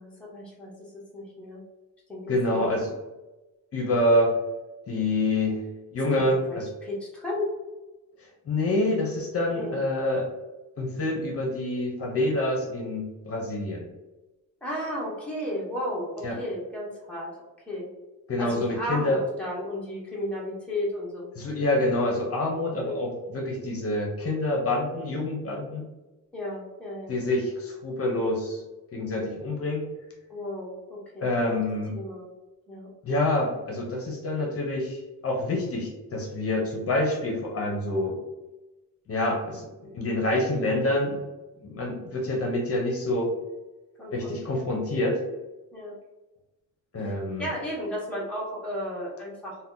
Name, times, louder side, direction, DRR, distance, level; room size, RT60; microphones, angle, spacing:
voice 1, 0.0-1.6 2.1-2.9 6.1-7.5 9.5-9.7 14.6-17.3 17.7-17.9 18.4-21.3 22.8-23.0 26.3-27.2 30.3-31.6 31.9-32.3 32.7-32.9 44.0-44.6 45.7-45.9 47.0-49.6, left 1 dB, 5° left, -5 dB, 0.7 m, -34 dB
voice 2, 2.3-2.9 3.7-4.3 4.9-5.6 5.9-6.7 8.5-10.3 10.8-13.9 16.2-16.4 18.3-19.2 21.4-25.9 27.1-28.6 28.9-29.9 31.2-32.0 33.0-38.2 39.1-41.2 41.6-43.3 44.1-45.2 46.9-47.5, left 1 dB, 45° left, -1 dB, 0.7 m, -27 dB
2.8 x 2.2 x 3.6 m, 1.1 s
wide cardioid pair, 170°, 33 cm